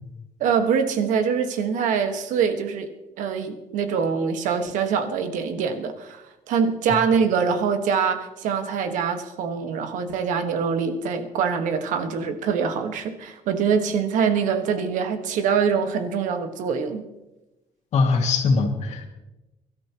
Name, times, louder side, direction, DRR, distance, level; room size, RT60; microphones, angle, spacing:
voice 1, 0.4-2.9 3.2-17.0, right 6 dB, 80° right, 7 dB, 1.5 m, -24 dB
voice 2, 17.9-19.1, left 4 dB, 60° left, 3 dB, 2.3 m, -21 dB
23.0 x 13.0 x 3.0 m, 1.0 s
cardioid pair, 140°, 13 cm